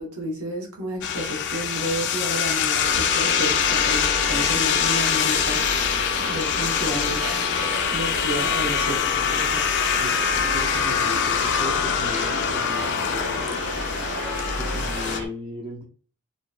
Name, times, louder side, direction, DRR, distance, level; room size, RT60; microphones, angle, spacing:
voice 1, 0.0-7.3 7.6-8.9, right 1 dB, 80° right, -1 dB, 0.9 m, -31 dB
sound 1, 1.0-15.2, left 8 dB, 55° left, 0.3 m, -24 dB
sound 2, 2.8-15.3, right 2 dB, 55° right, 0.7 m, -32 dB
voice 2, 8.5-13.7 14.6-15.8, equal, 20° right, -1 dB, 0.5 m, -37 dB
2.6 x 2.1 x 2.3 m, 0.41 s
head